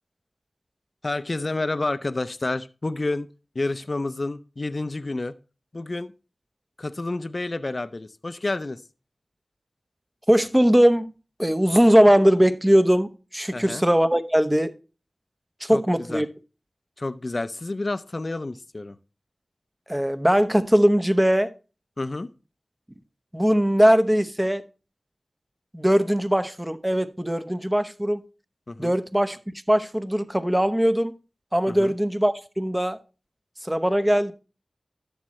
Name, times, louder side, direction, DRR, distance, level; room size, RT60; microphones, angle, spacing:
voice 1, 1.0-3.3 3.5-5.3 5.7-6.1 6.8-8.8 13.5-13.8 15.7-16.3 17.0-19.0 22.0-22.3 28.7-28.9 31.7-31.9, left 2 dB, 50° left, 0.5 m, -29 dB
voice 2, 10.3-11.1 11.4-14.7 15.6-16.3 19.9-21.5 23.3-24.6 25.7-28.2 28.8-29.4 29.7-31.1 31.5-33.0 33.6-34.3, equal, 10° right, 0.8 m, -20 dB
11.5 x 7.3 x 3.1 m
cardioid pair, 40°, 0 cm